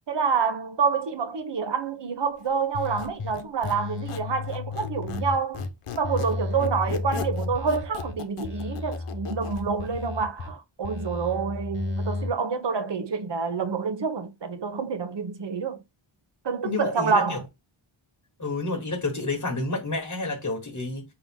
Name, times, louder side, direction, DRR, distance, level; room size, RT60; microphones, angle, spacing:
voice 1, 0.1-5.6 5.9-15.8 16.4-17.4, right 5 dB, 60° right, 0.8 m, -27 dB
sound 1, 2.7-3.3 3.6-5.7 6.0-8.1 8.4-10.5 10.8-12.3, left 3 dB, 60° left, 1.2 m, -32 dB
Squeak, 2.8-5.3 5.5-9.7, left 8 dB, 90° left, 0.7 m, -38 dB
voice 2, 16.6-17.4 18.4-21.0, left 3 dB, 35° left, 1.2 m, -29 dB
5.1 x 2.8 x 3.7 m
wide cardioid pair, 95°, 50 cm